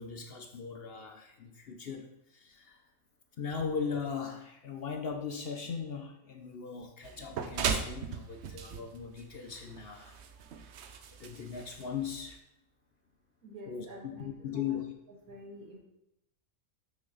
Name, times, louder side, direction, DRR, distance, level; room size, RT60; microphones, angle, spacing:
voice 1, 0.0-2.8 3.4-10.2 11.2-12.4 13.7-14.9, left 6 dB, 55° left, 5 dB, 0.7 m, -39 dB
sound 1, 7.0-12.4, right 6 dB, 60° right, 0.8 m, -38 dB
voice 2, 13.4-14.8 15.3-15.8, right 1 dB, 85° right, -2 dB, 2.1 m, -48 dB
6.3 x 6.1 x 4.0 m, 0.81 s
omnidirectional pair, 1.4 m